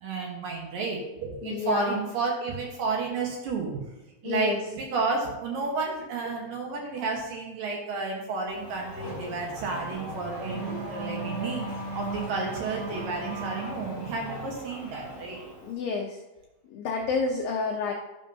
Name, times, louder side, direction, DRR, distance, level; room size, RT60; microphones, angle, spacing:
voice 1, 0.0-3.8 4.2-11.6 11.9-15.4, right 4 dB, 65° right, 0 dB, 2.6 m, -31 dB
voice 2, 1.4-2.0 4.2-4.6 15.6-16.2 16.7-17.9, left 4 dB, 90° left, 2 dB, 2.0 m, -29 dB
Race car auto racing / Accelerating revving vroom, 8.5-15.7, right 2 dB, 20° left, 3.8 m, -37 dB
11.0 x 11.0 x 2.8 m, 1.0 s
omnidirectional pair, 5.2 m